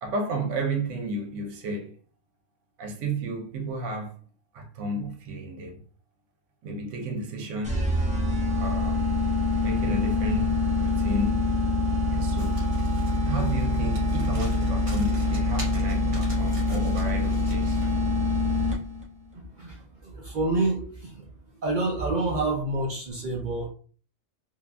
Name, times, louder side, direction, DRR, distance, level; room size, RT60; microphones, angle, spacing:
voice 1, 0.0-1.9 2.8-4.1 4.5-5.8 6.6-7.8 8.6-9.0 9.6-11.4 12.1-12.6 13.2-17.8, right 2 dB, 80° right, 1.0 m, -32 dB
sound 1, 7.6-19.1, left 2 dB, 10° right, 0.4 m, -25 dB
Domestic sounds home sounds, 12.4-18.0, right 1 dB, 30° right, 0.8 m, -45 dB
voice 2, 19.3-21.3 21.6-23.7, right 2 dB, 60° right, 0.5 m, -28 dB
3.2 x 2.1 x 2.3 m
omnidirectional pair, 1.3 m